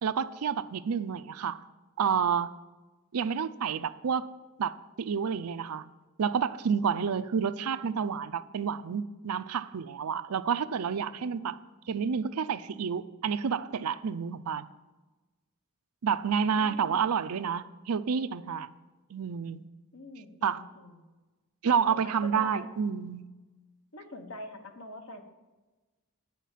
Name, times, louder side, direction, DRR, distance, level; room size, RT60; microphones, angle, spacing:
voice 1, 0.0-1.6 2.0-2.5 3.1-4.3 4.6-5.8 6.2-11.6 11.9-14.6 16.0-18.7 19.1-19.6 20.4-20.6 21.6-23.3, right 6 dB, 80° right, 13 dB, 0.5 m, -29 dB
voice 2, 11.2-11.8 16.3-17.3 19.9-21.0 21.7-22.7 23.9-25.2, left 2 dB, 65° left, 6 dB, 1.2 m, -45 dB
9.2 x 5.8 x 7.3 m, 1.2 s
head